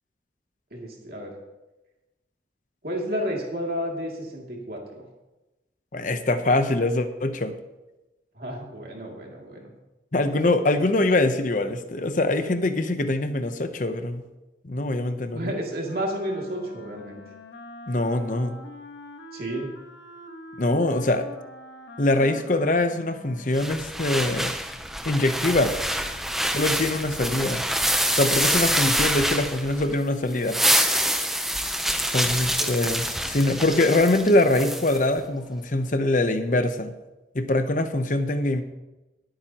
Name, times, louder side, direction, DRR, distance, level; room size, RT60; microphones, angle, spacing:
voice 1, 0.7-1.4 2.8-5.1 8.3-9.7 15.3-17.2 19.3-19.7 32.6-32.7, equal, 55° right, -1 dB, 2.6 m, -31 dB
voice 2, 5.9-7.5 10.1-14.2 14.6-15.5 17.9-18.6 20.6-21.3 22.0-24.6 25.0-25.8 26.5-27.6 28.1-30.6 32.1-36.9 37.3-38.6, left 2 dB, 45° left, 9 dB, 0.8 m, -23 dB
Wind instrument woodwind instrument, 15.8-24.5, left 1 dB, 70° left, 1.4 m, -44 dB
sound 1, 23.5-29.9 30.3-35.0, equal, ahead, 0.7 m, -26 dB
21.0 x 8.8 x 3.0 m, 1.0 s
head